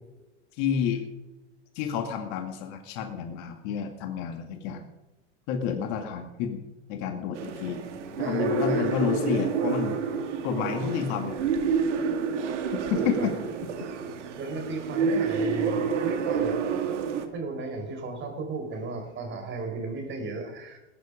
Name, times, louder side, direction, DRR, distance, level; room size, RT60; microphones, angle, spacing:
voice 1, 0.6-1.0 1.8-4.9 5.5-6.6 6.9-7.8 8.2-10.0 10.4-11.3 12.9-13.3, left 7 dB, 50° left, 5 dB, 2.2 m, -30 dB
sound 1, 7.3-17.3, right 5 dB, 75° right, 2.1 m, -28 dB
voice 2, 8.2-9.1 12.9-13.3 14.4-16.9 17.3-20.8, right 3 dB, 30° right, 5 dB, 4.5 m, -35 dB
20.0 x 9.9 x 5.1 m, 1.0 s
hypercardioid pair, 110°, 36 cm